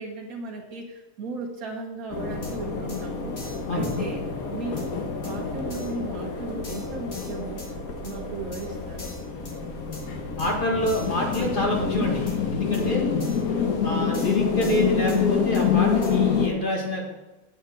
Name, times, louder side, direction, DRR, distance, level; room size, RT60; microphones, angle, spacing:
voice 1, 0.0-3.4 3.7-4.2 4.5-7.7 8.0-9.1 13.2-13.6, right 3 dB, 80° right, -1 dB, 1.6 m, -36 dB
sound 1, 2.1-16.5, left 6 dB, 85° left, 1.7 m, -27 dB
sound 2, 2.4-2.5 2.9-3.0 3.4-4.0 4.8-4.9 5.2-5.3 5.7-5.9 6.6-7.7 8.0-8.2 8.5-8.6 9.0-9.6 9.9-10.0 10.4-10.5 10.9-11.5 12.3-12.4 12.7-12.8 13.2-13.4 14.1-15.2 15.5-15.7 16.0-16.1, left 3 dB, 55° left, 2.0 m, -44 dB
voice 2, 10.4-13.1 13.8-17.1, left 1 dB, 35° left, 0 dB, 2.1 m, -27 dB
8.7 x 7.4 x 6.0 m, 1.1 s
omnidirectional pair, 1.5 m